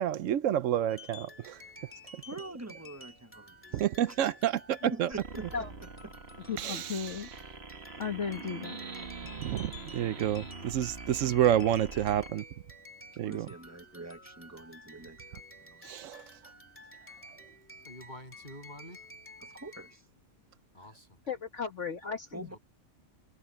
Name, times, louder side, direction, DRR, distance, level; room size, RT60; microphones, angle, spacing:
voice 1, 0.0-1.6 3.7-5.1 6.6-7.3 9.4-12.4 13.2-13.5 15.8-16.2, right 11 dB, 75° right, 1.0 m, -29 dB
sound 1, 0.9-20.0, left 1 dB, 10° left, 2.6 m, -52 dB
voice 2, 2.3-4.2 4.9-6.1 6.5-6.6 13.1-15.9 19.4-20.1 22.3-22.6, right 2 dB, 10° right, 1.5 m, -45 dB
sound 2, 5.1-12.3, right 4 dB, 50° right, 2.2 m, -44 dB
voice 3, 6.5-7.3 8.0-8.8 21.3-22.5, left 6 dB, 65° left, 1.8 m, -35 dB
voice 4, 17.8-19.1 20.7-21.2 22.5-22.6, left 1 dB, 35° left, 8.2 m, -48 dB
omnidirectional pair, 1.4 m